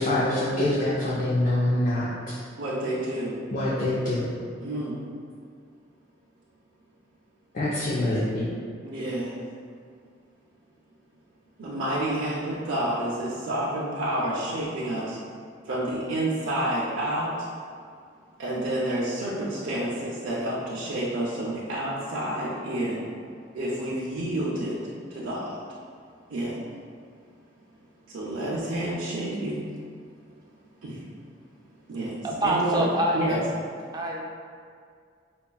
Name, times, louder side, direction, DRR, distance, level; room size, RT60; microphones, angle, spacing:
voice 1, 0.0-2.3 3.5-4.4 7.5-8.5, left 1 dB, 45° left, -8 dB, 0.5 m, -25 dB
voice 2, 2.6-3.4 4.6-4.9 8.8-9.4 11.6-15.2 15.6-17.5 18.4-23.1 23.5-24.8 25.1-25.6 26.3-26.5 28.1-29.7 30.8-31.0 31.9-32.9 33.1-33.4, right 1 dB, 85° right, -8 dB, 0.6 m, -29 dB
voice 3, 32.2-33.4 33.9-34.2, right 1 dB, 20° right, -1 dB, 0.4 m, -26 dB
5.1 x 2.3 x 2.3 m, 2.1 s
head